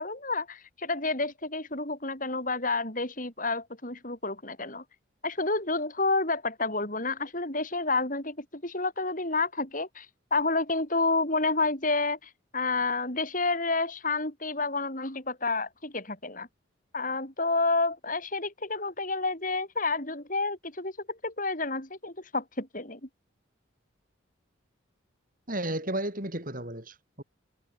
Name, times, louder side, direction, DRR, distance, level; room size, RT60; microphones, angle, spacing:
voice 1, 0.0-4.8 5.2-16.5 16.9-23.0, left 3 dB, 40° left, 5.3 m, -30 dB
voice 2, 25.5-27.2, right 1 dB, 40° right, 7.9 m, -33 dB
head